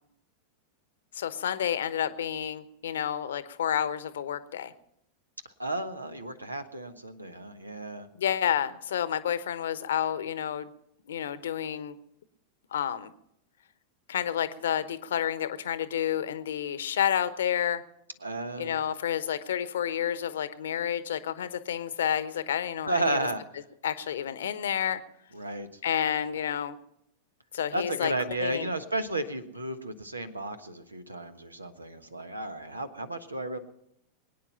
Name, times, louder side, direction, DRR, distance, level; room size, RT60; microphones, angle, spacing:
voice 1, 1.1-4.7 8.2-10.7 11.1-12.0 12.7-13.1 14.1-17.8 18.6-23.3 23.8-25.0 25.8-26.8 27.5-28.1 28.4-28.7, left 9 dB, 65° left, 14 dB, 1.0 m, -30 dB
voice 2, 5.6-8.1 18.2-18.8 22.9-23.4 25.3-25.7 27.7-33.6, right 2 dB, 80° right, 10 dB, 1.2 m, -33 dB
22.5 x 9.7 x 5.7 m, 0.78 s
figure-of-eight pair, 90°, 0 cm